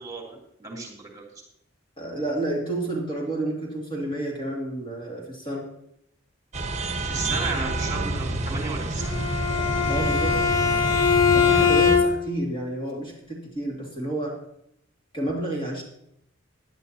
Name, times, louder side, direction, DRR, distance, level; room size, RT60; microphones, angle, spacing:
voice 1, 0.0-1.4 7.0-9.1 11.6-11.7, right 3 dB, 20° right, -2 dB, 2.9 m, -34 dB
voice 2, 2.0-5.7 9.9-10.4 11.3-14.4 15.1-15.8, right 1 dB, 25° left, -2 dB, 2.3 m, -30 dB
sound 1, 6.5-12.0, right 1 dB, 35° right, 1.1 m, -28 dB
Bowed string instrument, 9.0-12.4, left 6 dB, 90° left, 1.8 m, -21 dB
17.0 x 10.5 x 2.8 m, 0.75 s
head